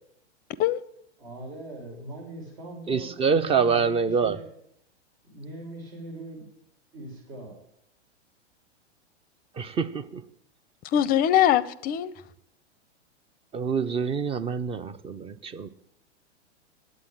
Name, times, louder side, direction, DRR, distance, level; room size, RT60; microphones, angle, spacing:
voice 1, 1.2-4.4 5.2-6.4 6.9-7.6, right 1 dB, 65° right, 6.2 m, -41 dB
voice 2, 2.9-4.4 9.6-10.2 13.5-15.7, right 6 dB, 15° right, 0.6 m, -26 dB
voice 3, 10.9-12.1, left 11 dB, 25° left, 0.6 m, -22 dB
9.6 x 8.4 x 8.8 m
hypercardioid pair, 110°, 34 cm